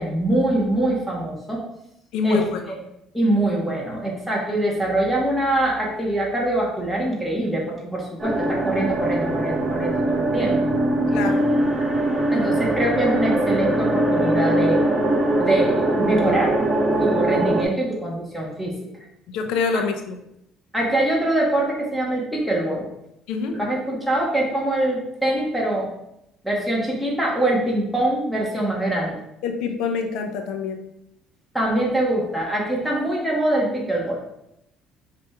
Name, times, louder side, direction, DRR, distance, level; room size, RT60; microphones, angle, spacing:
voice 1, 0.0-1.6 2.2-2.4 2.7-2.8 3.1-10.6 12.3-14.8 15.4-16.6 17.0-18.7 20.7-22.9 23.5-25.9 26.4-29.2 31.5-34.2, right 1 dB, ahead, -4 dB, 2.3 m, -23 dB
voice 2, 2.1-2.6 11.1-11.4 19.3-20.2 23.3-23.6 29.4-30.8, left 4 dB, 80° left, 4 dB, 0.9 m, -25 dB
sound 1, 8.2-17.6, right 1 dB, 20° right, 1.2 m, -21 dB
5.9 x 3.5 x 4.6 m, 0.82 s
cardioid pair, 100°, 0 cm